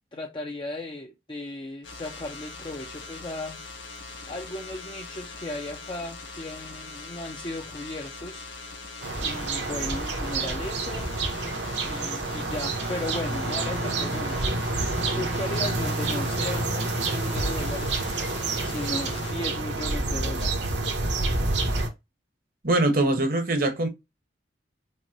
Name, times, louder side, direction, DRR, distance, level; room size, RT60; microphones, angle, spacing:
voice 1, 0.1-3.6 4.3-8.5 9.2-11.1 11.8-14.6 15.1-18.0 18.6-20.7, left 2 dB, 25° left, 0.5 m, -36 dB
sound 1, 1.8-19.3, left 3 dB, 85° left, 1.3 m, -41 dB
sound 2, 9.0-21.9, right 2 dB, 70° right, 1.2 m, -28 dB
voice 2, 22.6-23.9, right 2 dB, 50° right, 1.1 m, -22 dB
5.4 x 2.2 x 2.8 m
head